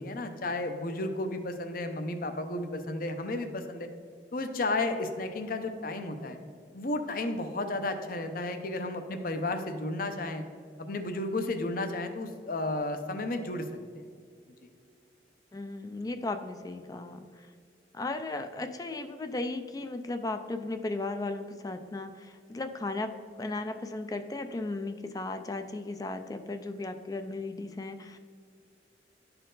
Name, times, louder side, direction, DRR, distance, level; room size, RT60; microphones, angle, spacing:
voice 1, 0.0-3.9 4.3-6.4 6.7-10.4 10.8-13.7 14.6-14.7, left 2 dB, 55° left, 7 dB, 0.7 m, -33 dB
voice 2, 15.5-17.3 17.9-28.2, left 2 dB, 20° left, 8 dB, 0.4 m, -36 dB
11.5 x 4.4 x 3.8 m, 2.2 s
head